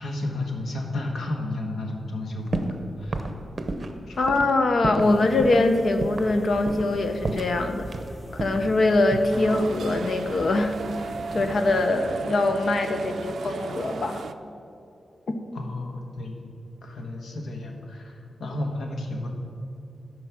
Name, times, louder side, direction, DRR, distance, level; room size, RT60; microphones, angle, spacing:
voice 1, 0.0-3.3 4.1-4.2 5.0-5.2 7.6-7.9 15.5-16.4 16.8-19.3, left 2 dB, 80° left, 2 dB, 1.4 m, -32 dB
sound 1, 2.5-2.8 3.1-5.1 5.4-5.6 6.0-6.3 6.7-7.0 7.2-8.1 8.4-9.7 10.7-11.6 11.9-12.4, right 3 dB, 45° right, 0.8 m, -32 dB
voice 2, 4.2-7.8 8.3-14.2, left 2 dB, 60° left, 7 dB, 0.8 m, -23 dB
sound 2, 5.0-11.9, equal, ahead, 1.6 m, -44 dB
sound 3, 9.3-14.3, right 5 dB, 75° right, 0.4 m, -35 dB
13.0 x 5.4 x 6.0 m, 2.6 s
wide cardioid pair, 110°, 0 cm